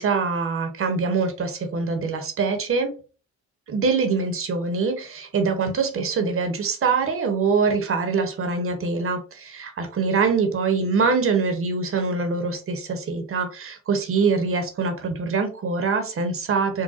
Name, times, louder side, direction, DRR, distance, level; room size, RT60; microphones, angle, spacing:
voice 1, 0.0-2.9 3.7-16.8, right 4 dB, 45° right, 7 dB, 0.8 m, -24 dB
3.9 x 2.1 x 2.5 m, 0.35 s
cardioid pair, 90°, 30 cm